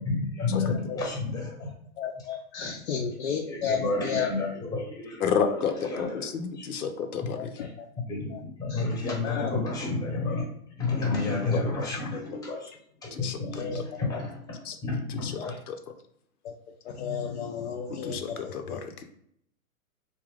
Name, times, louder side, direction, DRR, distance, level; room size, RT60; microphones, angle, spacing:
voice 1, 0.0-1.7 3.5-6.7 7.2-7.3 7.6-7.7 8.1-10.5 10.8-12.7 13.0-15.6, left 3 dB, 10° left, -1 dB, 0.8 m, -31 dB
voice 2, 2.0-4.3 7.3-7.9 8.3-8.4 8.7-9.5 11.5-11.6 13.6-13.8 15.4-15.6 16.4-16.5 16.8-18.8, left 7 dB, 50° left, 3 dB, 0.5 m, -33 dB
voice 3, 5.2-7.4 11.5-11.6 11.9-12.0 13.1-13.4 14.7-14.8 15.2-15.3 15.7-15.8 18.0-19.0, left 6 dB, 80° left, 6 dB, 0.8 m, -30 dB
3.7 x 2.9 x 3.3 m, 0.70 s
hypercardioid pair, 140°, 44 cm